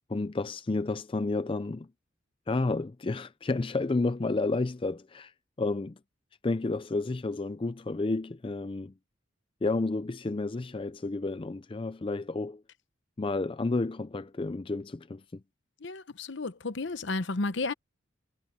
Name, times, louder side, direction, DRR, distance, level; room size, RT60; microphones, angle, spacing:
voice 1, 0.1-1.9 2.5-5.3 5.6-5.9 6.4-8.9 9.6-12.6 13.2-15.2, left 3 dB, 25° left, 0.4 m, -31 dB
voice 2, 15.8-17.7, left 3 dB, 70° left, 0.9 m, -32 dB
head